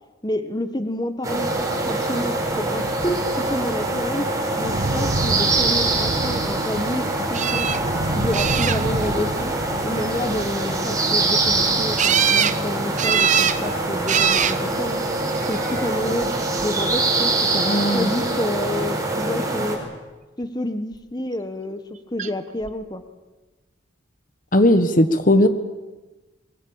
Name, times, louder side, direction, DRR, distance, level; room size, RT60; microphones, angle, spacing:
voice 1, 0.2-1.5 1.9-4.3 4.6-7.7 8.1-9.5 9.8-14.9 15.5-16.3 16.6-19.8 20.4-21.8 22.1-23.0, left 1 dB, 20° left, 9 dB, 1.3 m, -29 dB
sound 1, 1.2-19.8, right 2 dB, 15° right, 4.9 m, -24 dB
Thunder, 1.3-18.9, right 2 dB, 60° right, 1.2 m, -33 dB
sound 2, 7.3-7.8 8.3-9.1 12.0-12.6 13.0-13.6 14.1-14.6 15.5-16.0 22.2-22.3 22.6-22.7, right 8 dB, 40° right, 0.8 m, -21 dB
voice 2, 17.5-18.1 24.5-25.5, left 1 dB, 40° left, 10 dB, 1.3 m, -17 dB
23.0 x 23.0 x 8.8 m, 1.2 s
head